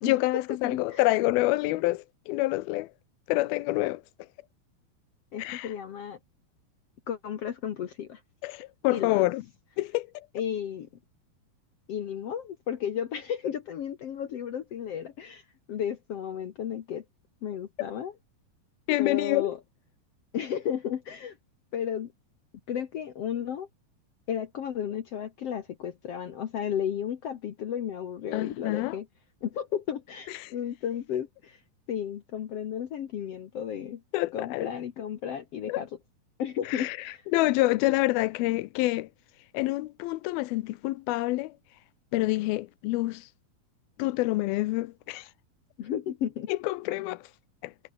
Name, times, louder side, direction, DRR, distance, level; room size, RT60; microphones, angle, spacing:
voice 1, 0.1-2.9 3.3-4.0 5.4-5.7 8.4-9.4 9.8-10.3 18.9-19.6 28.3-28.9 30.4-30.5 34.1-34.7 35.7-35.8 36.7-37.0 37.3-39.1 39.5-41.5 42.1-43.3 44.0-45.3 46.5-47.2 47.6-47.7, left 19 dB, 85° left, 2.6 m, -27 dB
voice 2, 0.6-1.0 5.3-6.2 7.1-8.2 8.9-9.3 10.3-10.9 11.9-15.4 15.7-17.0 17.4-18.1 19.0-19.6 20.3-21.4 21.7-22.1 22.7-23.7 24.3-29.1 29.4-31.6 31.9-34.0 34.3-35.9 36.4-37.2 45.8-46.5, left 9 dB, 60° left, 1.6 m, -33 dB
omnidirectional pair, 4.3 m